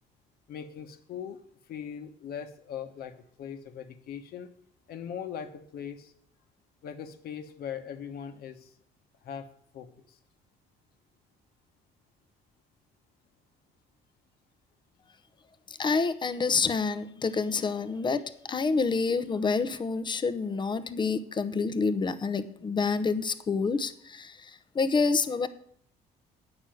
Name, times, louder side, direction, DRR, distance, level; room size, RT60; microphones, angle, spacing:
voice 1, 0.5-1.4 1.7-4.5 4.9-6.1 6.8-8.7 9.2-9.5 9.7-10.2, left 8 dB, 65° left, 8 dB, 1.2 m, -40 dB
voice 2, 15.7-25.5, left 4 dB, 25° left, 13 dB, 0.8 m, -28 dB
8.9 x 6.2 x 7.7 m, 0.65 s
cardioid pair, 110°, 17 cm